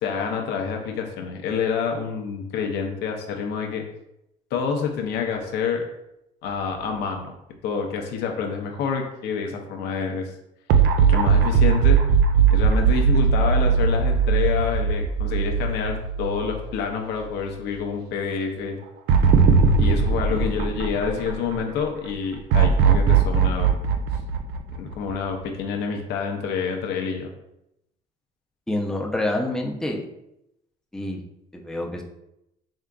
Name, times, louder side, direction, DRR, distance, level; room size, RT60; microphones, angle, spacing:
voice 1, 0.0-3.8 4.5-5.8 6.4-7.3 7.6-10.3 11.1-12.0 12.5-18.8 19.8-23.7 24.7-27.3, left 6 dB, 80° left, 3 dB, 0.6 m, -27 dB
sound 1, 10.7-17.0 17.4-17.5 19.1-21.6 22.5-25.3, right 6 dB, 80° right, 0.4 m, -19 dB
voice 2, 28.7-30.1 30.9-31.2 31.5-32.0, left 1 dB, 5° left, 1 dB, 0.5 m, -27 dB
3.6 x 3.6 x 2.2 m, 0.84 s
cardioid pair, 110°, 17 cm